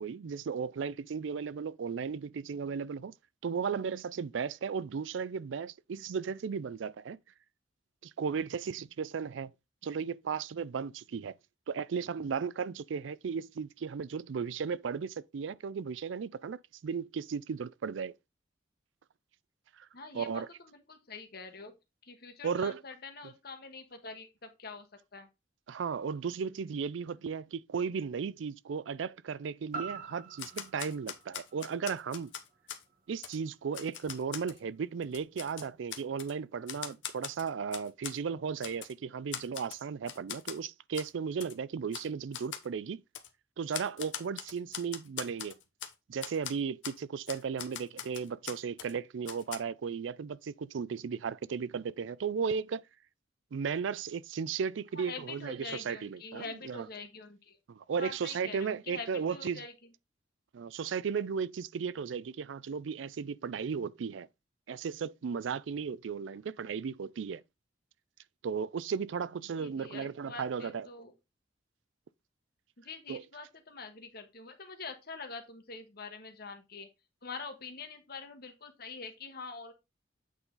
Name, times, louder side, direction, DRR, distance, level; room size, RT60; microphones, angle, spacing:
voice 1, 0.0-3.1 3.4-7.2 8.0-9.5 9.8-11.3 11.7-18.1 19.8-19.9 20.1-20.5 22.4-22.8 23.2-23.3 25.7-32.3 33.1-43.0 43.6-45.5 46.1-52.8 53.5-56.9 57.7-59.6 60.5-64.3 64.7-67.4 68.4-70.9 73.1-73.2, right 6 dB, 85° right, 0.4 m, -35 dB
voice 2, 19.9-21.7 22.0-24.9 25.1-25.3 54.9-57.6 58.0-59.7 69.6-71.1 72.8-76.9 77.2-79.7, left 4 dB, 55° left, 1.4 m, -45 dB
sound 1, 29.7-33.8 34.3-34.4, right 5 dB, 50° right, 1.2 m, -46 dB
Typewriter, 30.4-32.8 33.2-33.4 33.7-34.6 35.0-36.3 36.7-38.2 38.6-38.9 39.3-39.8 40.1-40.6 40.9-41.1 41.4-41.5 41.9-42.1 42.3-42.7 43.1-43.3 43.7-45.9 46.2-46.5 46.8-47.0 47.3-48.9 49.3-49.6, left 9 dB, 90° left, 1.0 m, -41 dB
8.3 x 3.9 x 3.9 m
head